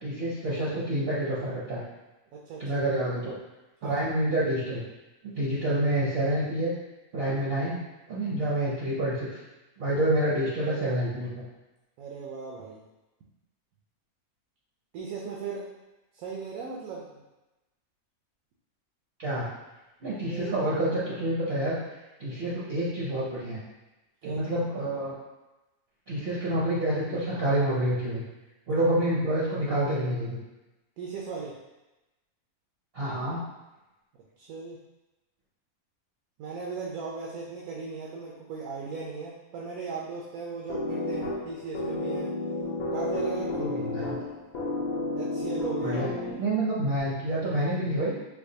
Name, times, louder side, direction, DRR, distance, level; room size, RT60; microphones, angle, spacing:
voice 1, 0.0-1.8 2.6-3.4 3.8-4.8 5.2-6.7 7.1-7.8 8.1-9.4 9.8-11.5 19.2-19.5 20.0-21.8 22.2-23.6 24.2-25.1 26.1-28.2 28.7-30.4 32.9-33.4 43.6-44.2 45.8-46.1 46.4-48.1, right 1 dB, 55° right, -7 dB, 0.7 m, -28 dB
voice 2, 2.3-2.8 3.8-4.0 12.0-12.8 14.9-15.7 16.1-17.2 20.3-20.6 24.2-24.5 28.7-28.8 31.0-31.6 34.4-34.8 36.4-42.3 42.9-44.3 45.1-46.1, right 4 dB, 85° right, -3 dB, 1.1 m, -37 dB
sound 1, 40.7-46.7, left 2 dB, 60° left, 0.5 m, -31 dB
4.5 x 2.3 x 2.7 m, 1.0 s
omnidirectional pair, 1.5 m